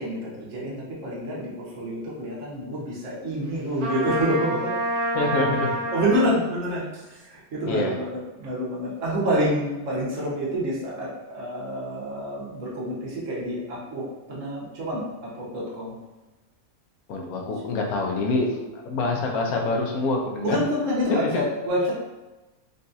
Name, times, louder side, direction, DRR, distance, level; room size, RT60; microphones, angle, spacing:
voice 1, 0.0-4.7 5.9-16.0 20.4-21.9, equal, 65° right, -6 dB, 1.3 m, -27 dB
Trumpet, 3.8-6.3, right 1 dB, 90° right, 1.3 m, -27 dB
voice 2, 5.1-5.7 7.7-8.0 17.1-20.6 21.1-21.4, left 2 dB, 90° left, 0 dB, 1.1 m, -26 dB
3.9 x 2.3 x 2.6 m, 1.1 s
omnidirectional pair, 1.5 m